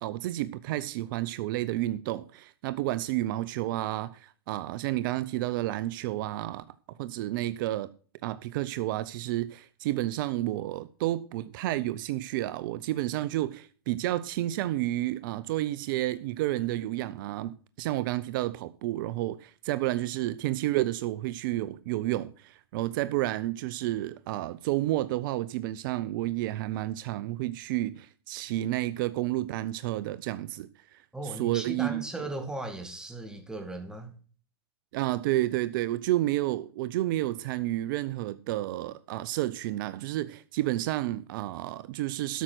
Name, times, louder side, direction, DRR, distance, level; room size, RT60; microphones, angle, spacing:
voice 1, 0.0-6.6 7.0-7.9 8.2-32.1 34.9-42.4, right 15 dB, 55° right, 0.6 m, -31 dB
voice 2, 31.1-34.2, right 2 dB, 5° right, 2.2 m, -37 dB
12.5 x 5.8 x 6.1 m
hypercardioid pair, 125°, 13 cm